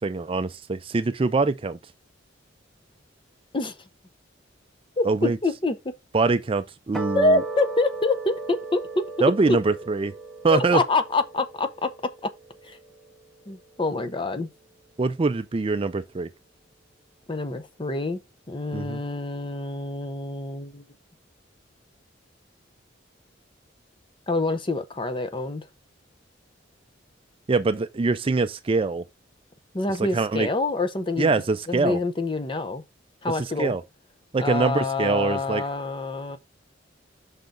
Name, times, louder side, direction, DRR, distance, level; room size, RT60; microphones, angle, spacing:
voice 1, 0.0-1.8 5.0-5.4 6.1-7.4 9.2-10.1 10.4-10.8 15.0-16.3 18.7-19.0 27.5-29.0 30.0-30.5 31.2-32.0 33.3-33.8 34.3-35.6, right 3 dB, 30° right, 0.4 m, -24 dB
voice 2, 5.0-5.9 7.1-9.0 9.5-9.6 10.5-11.9 12.6-12.8 13.5-14.5 17.3-18.2 18.5-20.8 24.3-25.7 29.7-31.3 31.7-32.8 33.2-33.7 34.4-36.4, left 2 dB, 25° left, 0.7 m, -26 dB
sound 1, 6.9-13.5, right 3 dB, ahead, 1.0 m, -37 dB
5.8 x 3.9 x 5.1 m
head